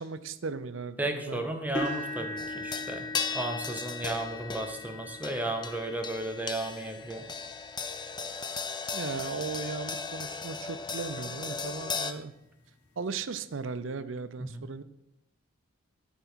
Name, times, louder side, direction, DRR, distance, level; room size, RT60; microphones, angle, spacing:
voice 1, 0.0-1.5 8.9-12.3 13.0-14.8, right 4 dB, 65° right, 13 dB, 0.5 m, -37 dB
voice 2, 1.0-7.3 14.4-14.7, right 1 dB, 10° right, 4 dB, 0.9 m, -34 dB
sound 1, 1.7-9.8 10.4-10.6 11.1-11.2 12.6-12.7, left 1 dB, 55° left, 2.8 m, -41 dB
sound 2, 2.4-12.1, left 5 dB, 20° left, 0.5 m, -37 dB
13.0 x 4.6 x 6.1 m, 0.89 s
head